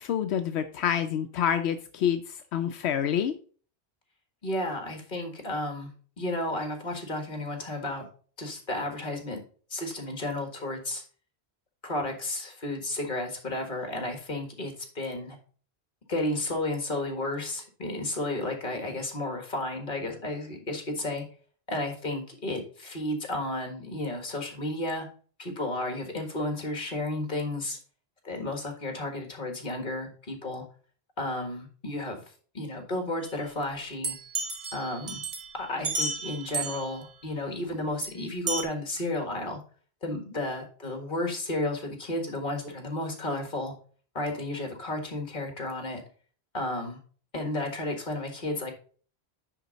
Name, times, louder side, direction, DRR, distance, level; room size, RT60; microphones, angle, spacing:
voice 1, 0.0-3.4, left 9 dB, 85° left, 8 dB, 0.9 m, -27 dB
voice 2, 4.4-5.9 6.2-8.1 8.4-9.4 9.7-11.0 11.8-15.4 16.1-21.2 21.7-25.1 25.4-27.8 28.2-30.6 31.2-32.2 32.5-34.2 34.7-35.2 35.6-39.6 40.0-43.7 44.1-46.0 46.5-47.0 47.3-48.7, left 1 dB, 50° left, 3 dB, 1.8 m, -32 dB
sound 1, 34.0-36.9 38.0-38.1 38.5-38.6, right 3 dB, 50° right, 1.2 m, -32 dB
9.8 x 3.8 x 4.0 m, 0.42 s
omnidirectional pair, 1.1 m